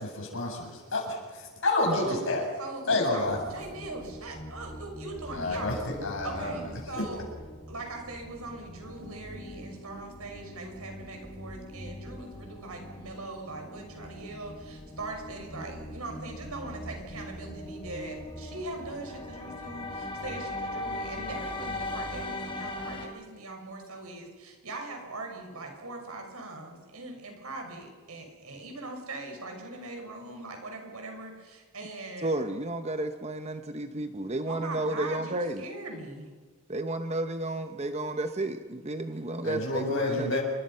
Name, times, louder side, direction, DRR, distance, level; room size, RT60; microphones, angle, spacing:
voice 1, 0.0-2.4 2.9-3.4 5.3-6.7 7.0-7.1 39.4-40.4, left 2 dB, 60° left, 0 dB, 7.3 m, -29 dB
voice 2, 1.9-2.3 2.6-5.8 6.2-7.3 7.7-32.3 34.5-36.3, right 2 dB, 85° right, 3 dB, 6.1 m, -41 dB
sound 1, 3.2-23.1, left 1 dB, 25° left, 3.5 m, -41 dB
voice 3, 32.2-35.7 36.7-40.4, right 2 dB, 30° right, 8 dB, 1.0 m, -32 dB
28.0 x 24.0 x 5.7 m, 1.4 s
head